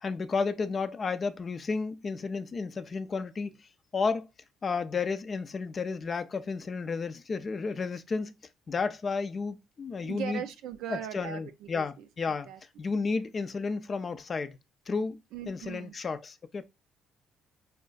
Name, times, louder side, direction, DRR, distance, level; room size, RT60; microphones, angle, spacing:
voice 1, 0.0-3.5 3.9-4.3 4.6-8.3 8.7-10.4 10.9-12.5 12.8-14.6 14.9-15.2 15.5-16.6, left 4 dB, 40° left, 0.4 m, -32 dB
voice 2, 10.0-12.6 15.3-16.0, right 9 dB, 70° right, 0.4 m, -40 dB
4.4 x 2.3 x 2.2 m
hypercardioid pair, 55°, 0 cm